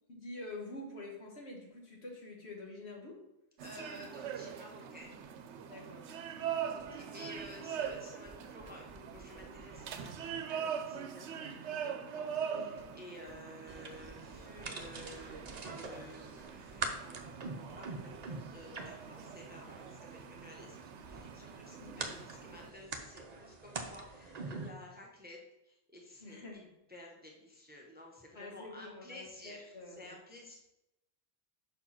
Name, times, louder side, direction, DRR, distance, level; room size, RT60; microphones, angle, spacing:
voice 1, 0.1-3.2 5.6-6.1 12.5-12.8 21.8-22.1 26.2-26.6 28.4-30.2, left 2 dB, 65° left, -2 dB, 1.7 m, -47 dB
voice 2, 3.6-5.3 6.3-30.6, left 1 dB, 10° right, -1 dB, 0.9 m, -53 dB
sound 1, 3.6-22.7, right 8 dB, 75° right, 0.9 m, -43 dB
sound 2, 6.8-21.2, right 1 dB, 15° left, 1.4 m, -62 dB
sound 3, 13.7-24.7, right 3 dB, 45° right, 0.7 m, -45 dB
5.4 x 4.6 x 5.8 m, 0.89 s
omnidirectional pair, 1.2 m